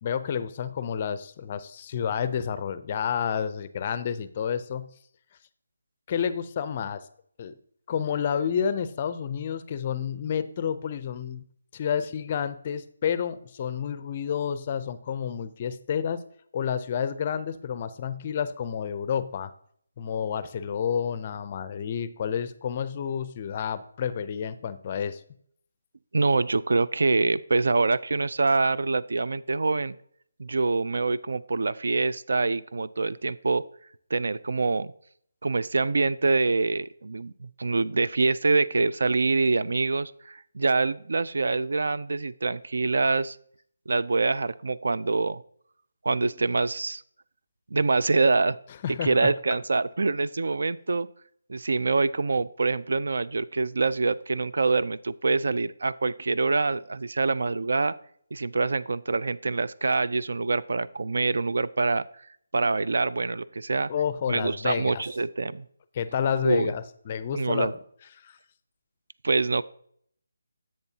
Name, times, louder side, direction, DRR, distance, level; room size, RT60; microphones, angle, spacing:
voice 1, 0.0-4.9 6.1-7.1 7.4-7.5 7.9-11.4 11.7-16.2 16.5-19.5 20.0-25.2 48.8-49.3 63.9-65.0 65.9-67.7 68.2-68.4, left 8 dB, 30° left, 14 dB, 0.4 m, -30 dB
voice 2, 26.1-30.0 30.4-33.6 34.1-34.9 35.4-43.4 43.9-45.4 46.0-47.0 47.7-48.6 49.0-51.1 51.5-57.9 58.3-62.0 62.5-63.9 64.3-65.6 66.4-66.7 67.3-67.7 69.2-69.6, right 3 dB, 70° right, 17 dB, 0.3 m, -25 dB
10.5 x 7.6 x 2.8 m, 0.64 s
figure-of-eight pair, 165°, 0 cm